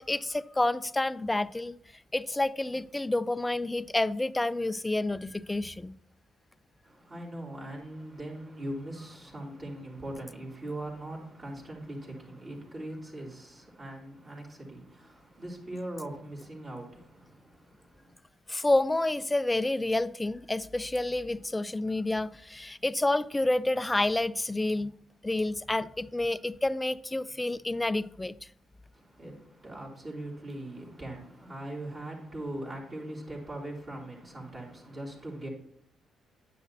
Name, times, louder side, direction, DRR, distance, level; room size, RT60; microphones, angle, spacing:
voice 1, 0.0-1.8 2.1-6.0 18.5-24.9 25.2-28.3, left 2 dB, 15° left, 0.3 m, -29 dB
voice 2, 6.8-18.1 28.9-35.5, right 1 dB, 35° right, 3.3 m, -41 dB
9.5 x 8.3 x 2.9 m
cardioid pair, 90°, 0 cm